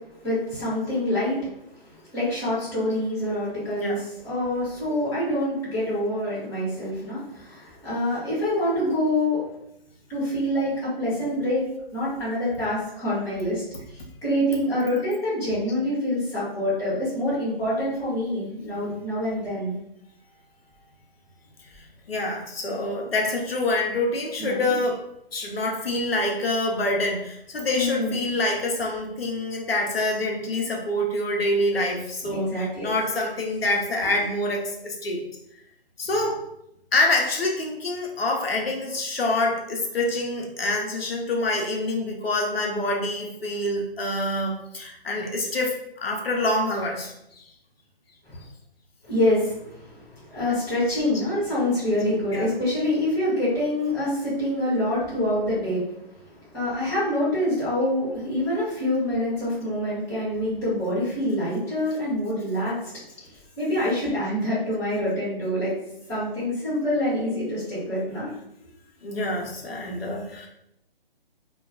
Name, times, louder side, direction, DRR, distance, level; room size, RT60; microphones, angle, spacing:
voice 1, 0.2-1.6 1.9-9.4 10.1-19.7 24.4-24.7 27.7-28.2 32.3-32.9 48.2-48.4 49.0-55.8 56.3-62.9 63.6-65.7 66.1-68.3, left 1 dB, 10° left, -10 dB, 1.0 m, -26 dB
voice 2, 21.7-25.0 25.3-35.2 36.0-36.4 36.9-47.4 52.3-52.5 69.0-70.5, left 2 dB, 75° left, 0 dB, 0.7 m, -26 dB
2.3 x 2.2 x 3.4 m, 0.79 s
figure-of-eight pair, 150°, 30 cm